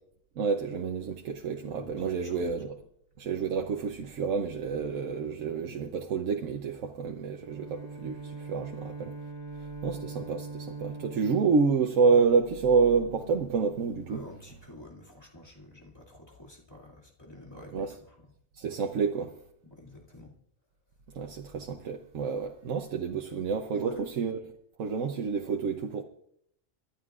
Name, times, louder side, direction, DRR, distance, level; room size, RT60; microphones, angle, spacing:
voice 1, 0.4-2.8 3.2-9.1 9.8-14.2 17.7-17.9 18.6-19.3 21.1-24.4 24.8-26.0, right 5 dB, 85° right, 1.2 m, -28 dB
voice 2, 1.7-2.5 14.1-18.3 19.6-20.3 23.7-24.0, left 1 dB, 20° left, 2.4 m, -48 dB
Bowed string instrument, 7.3-13.0, right 4 dB, 20° right, 3.0 m, -42 dB
28.5 x 12.0 x 2.5 m
omnidirectional pair, 1.3 m